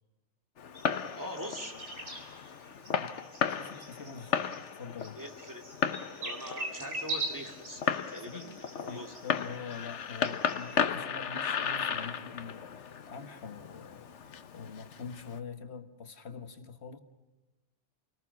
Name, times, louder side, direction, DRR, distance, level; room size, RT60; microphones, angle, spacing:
Fireworks, 0.6-15.4, left 7 dB, 90° left, 1.3 m, -35 dB
sound 1, 0.7-10.8, right 2 dB, 85° right, 4.5 m, -43 dB
voice 1, 1.2-1.7 5.2-5.6 6.2-9.1, equal, 15° right, 3 dB, 2.7 m, -42 dB
voice 2, 3.5-5.2 8.2-8.5 8.9-17.0, left 5 dB, 70° left, 8 dB, 1.7 m, -44 dB
29.0 x 19.5 x 6.1 m, 1.1 s
omnidirectional pair, 1.2 m